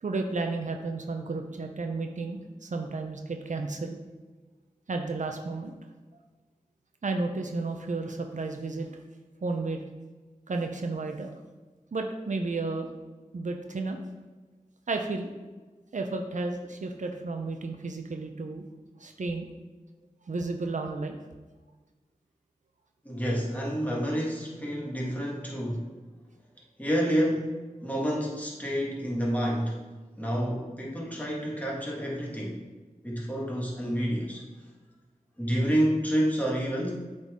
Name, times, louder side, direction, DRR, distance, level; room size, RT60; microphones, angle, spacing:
voice 1, 0.0-4.0 4.9-5.7 7.0-8.9 9.4-9.8 10.5-11.3 11.9-12.9 13.3-14.0 14.9-15.3 15.9-18.7 19.0-19.5 20.3-21.2, right 3 dB, 65° right, 4 dB, 0.6 m, -32 dB
voice 2, 23.0-25.9 26.8-29.8 30.2-32.6 33.0-34.4 35.4-36.9, equal, 10° left, -3 dB, 1.7 m, -29 dB
8.0 x 3.9 x 3.6 m, 1.3 s
wide cardioid pair, 50°, 14 cm